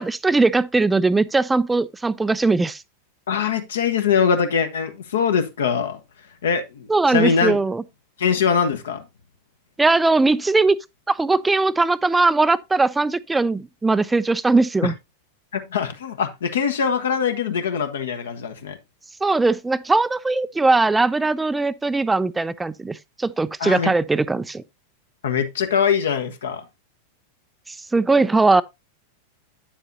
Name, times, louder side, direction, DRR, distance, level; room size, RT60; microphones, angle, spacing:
voice 1, 0.0-2.8 6.9-7.8 9.8-10.8 11.1-14.9 19.2-24.6 27.7-28.6, right 3 dB, 10° right, 0.3 m, -20 dB
voice 2, 3.3-6.0 6.4-7.6 8.2-9.1 14.8-14.9 15.5-18.8 23.6-23.9 25.2-26.7, left 6 dB, 65° left, 1.1 m, -22 dB
8.7 x 7.2 x 2.7 m
figure-of-eight pair, 90°, 0 cm